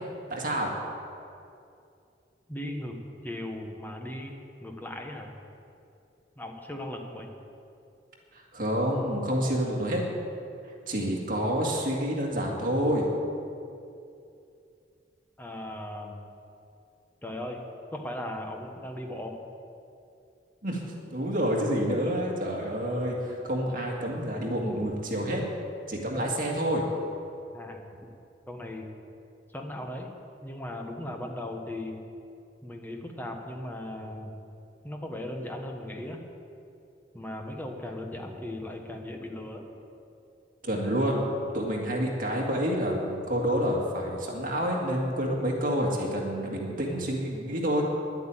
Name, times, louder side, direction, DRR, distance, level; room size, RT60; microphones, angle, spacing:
voice 1, 0.3-0.7 8.3-10.0 10.9-13.1 20.6-25.4 25.9-26.8 40.6-47.9, equal, 50° right, -1 dB, 2.0 m, -28 dB
voice 2, 2.5-3.0 3.2-4.3 4.6-5.3 6.4-7.3 15.4-16.2 17.2-17.6 17.9-19.4 27.5-27.8 28.5-28.9 29.5-30.1 30.4-32.0 32.6-34.3 34.8-36.2 37.1-39.6, left 1 dB, 10° left, 2 dB, 1.2 m, -37 dB
11.0 x 8.1 x 8.9 m, 2.6 s
head